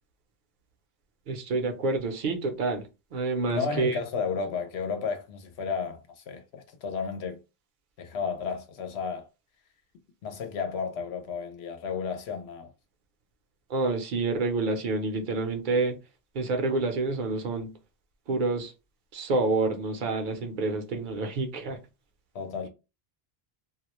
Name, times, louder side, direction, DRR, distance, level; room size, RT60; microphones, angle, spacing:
voice 1, 1.3-4.0 13.7-16.0 16.3-17.7 18.3-18.7 19.1-21.8, right 3 dB, 55° right, 0.7 m, -28 dB
voice 2, 3.5-7.4 8.0-9.3 10.2-12.7 22.3-22.7, left 5 dB, 80° left, 0.9 m, -33 dB
2.3 x 2.1 x 2.9 m
omnidirectional pair, 1.1 m